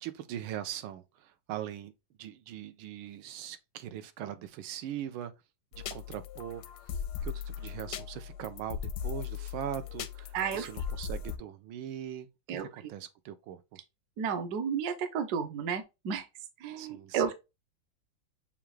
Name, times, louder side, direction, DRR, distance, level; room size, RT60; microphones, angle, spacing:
voice 1, 0.0-1.9 2.2-5.3 5.7-6.6 6.9-13.8 16.7-17.3, right 11 dB, 90° right, 1.4 m, -41 dB
sound 1, 5.7-11.4, left 8 dB, 75° left, 1.0 m, -38 dB
voice 2, 10.3-10.7 12.5-12.7 14.2-16.3 16.6-17.3, right 7 dB, 65° right, 1.1 m, -32 dB
6.9 x 2.4 x 3.1 m
omnidirectional pair, 2.2 m